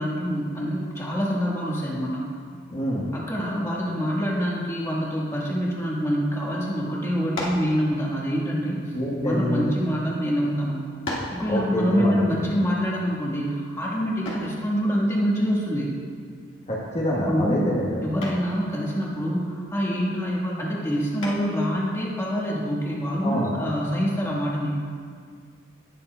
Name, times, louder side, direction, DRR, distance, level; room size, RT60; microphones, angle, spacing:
voice 1, 0.0-2.2 3.1-8.9 9.2-10.8 11.3-15.9 17.1-24.7, equal, 15° left, -4 dB, 1.4 m, -26 dB
voice 2, 2.7-3.1 8.9-9.7 11.5-12.3 16.7-18.0 23.2-23.5, equal, 35° left, -6 dB, 1.1 m, -26 dB
sound 1, 7.3-7.7 8.7-9.8 10.5-10.6 11.0-11.4 14.2-14.6 16.5-16.9 17.2-17.6 18.2-18.5 21.2-21.7, left 1 dB, 70° left, 1.8 m, -34 dB
18.0 x 6.9 x 2.2 m, 2.1 s
head